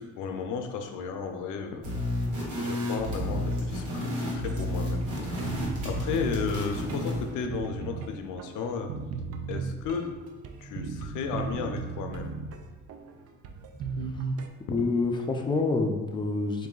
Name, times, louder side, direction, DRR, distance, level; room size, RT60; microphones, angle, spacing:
voice 1, 0.0-1.9 2.6-5.6 5.8-8.9 9.5-10.1 10.6-12.3, left 5 dB, 90° left, 5 dB, 0.5 m, -34 dB
sound 1, 1.8-7.3, left 1 dB, 85° right, 1.4 m, -31 dB
sound 2, 2.9-14.5, right 4 dB, 50° right, 0.5 m, -37 dB
voice 2, 14.7-16.7, left 3 dB, 15° left, 3 dB, 0.4 m, -27 dB
3.8 x 2.6 x 3.8 m, 1.2 s
cardioid pair, 90°, 30 cm